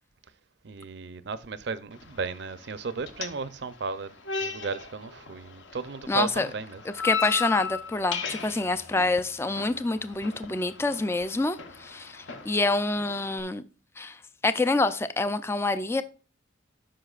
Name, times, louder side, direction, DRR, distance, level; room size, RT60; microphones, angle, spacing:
voice 1, 0.6-6.8, right 4 dB, 55° right, 0.5 m, -35 dB
sound 1, 1.9-13.4, left 6 dB, 65° left, 1.0 m, -38 dB
voice 2, 6.1-6.5 6.9-13.6 14.0-14.2 14.4-16.0, left 2 dB, 10° left, 0.3 m, -27 dB
13.0 x 5.8 x 2.4 m
head